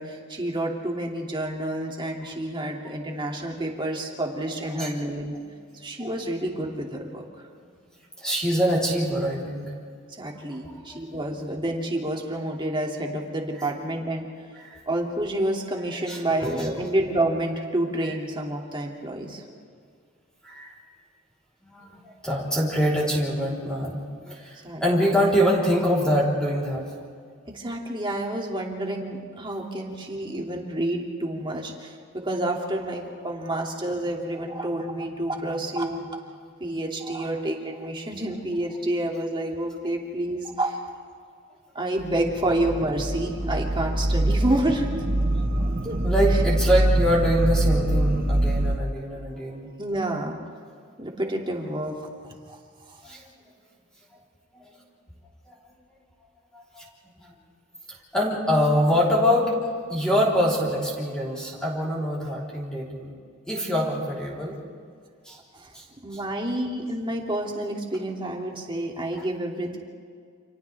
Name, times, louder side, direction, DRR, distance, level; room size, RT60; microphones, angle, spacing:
voice 1, 0.0-5.3 5.8-7.2 10.2-14.3 14.9-19.4 24.6-24.8 27.4-36.1 36.6-40.8 41.7-44.9 45.8-46.0 49.8-50.4 51.0-52.6 52.9-53.0 65.5-65.7 66.0-69.8, right 1 dB, 25° right, 0 dB, 2.6 m, -29 dB
voice 2, 8.2-9.7 10.3-11.0 14.6-14.8 16.1-16.7 20.4-20.7 21.6-26.8 29.5-29.6 45.6-49.7 53.0-53.3 54.5-54.7 55.5-55.6 56.5-56.9 57.2-57.3 58.1-63.1 63.5-64.6 65.3-65.4 65.7-65.8, equal, 5° left, -5 dB, 3.8 m, -25 dB
sound 1, 42.0-48.8, right 1 dB, 45° right, 1.4 m, -24 dB
29.5 x 27.5 x 3.5 m, 2.1 s
head